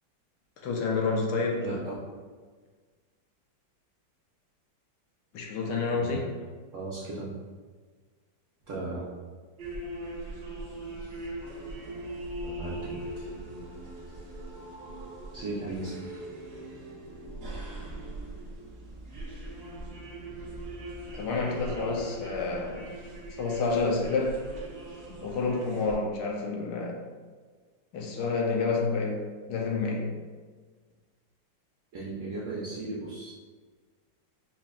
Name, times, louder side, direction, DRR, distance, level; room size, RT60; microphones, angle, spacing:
voice 1, 0.6-1.7 5.3-6.3 21.1-22.9 23.3-24.4 25.1-27.0 27.9-29.2 29.5-30.1, left 4 dB, 70° left, 0 dB, 1.0 m, -29 dB
voice 2, 1.6-1.9 5.9-6.3 6.7-7.3 8.7-9.1 12.4-13.3 15.3-16.0 31.9-33.3, right 2 dB, 80° right, -6 dB, 0.7 m, -36 dB
sound 1, 9.6-26.0, right 1 dB, 50° right, 0.8 m, -40 dB
5.7 x 2.4 x 2.4 m, 1.5 s
omnidirectional pair, 2.2 m